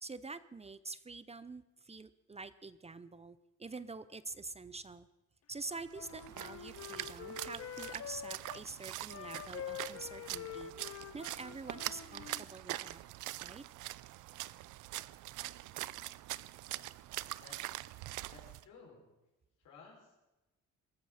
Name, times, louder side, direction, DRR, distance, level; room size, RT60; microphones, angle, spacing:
voice 1, 0.0-5.1 5.5-13.0 13.4-13.6, right 3 dB, 20° right, 15 dB, 0.6 m, -47 dB
Wind instrument woodwind instrument, 5.7-8.6 9.1-12.5, left 8 dB, 55° left, 1.1 m, -46 dB
Splash splatter, 5.9-18.6, right 16 dB, 80° right, 0.5 m, -44 dB
voice 2, 17.3-17.8 18.3-19.1 19.6-20.2, left 4 dB, 85° left, -2 dB, 6.0 m, -57 dB
22.0 x 13.5 x 4.3 m, 1.0 s
cardioid pair, 90°, 30 cm